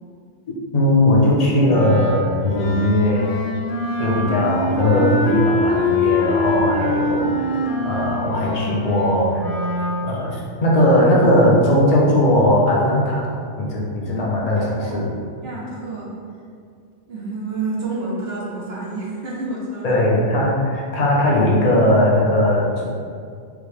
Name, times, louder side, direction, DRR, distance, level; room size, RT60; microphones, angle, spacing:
voice 1, 0.7-3.3 4.0-7.5 7.8-9.4 10.0-13.3 13.6-15.1 19.8-22.8, left 1 dB, 40° left, -4 dB, 0.8 m, -18 dB
Wind instrument woodwind instrument, 1.6-10.0, left 1 dB, 75° left, 1.2 m, -23 dB
voice 2, 14.1-16.2 17.1-20.1, right 2 dB, 65° right, -5 dB, 1.2 m, -30 dB
4.9 x 2.8 x 3.3 m, 2.2 s
omnidirectional pair, 1.2 m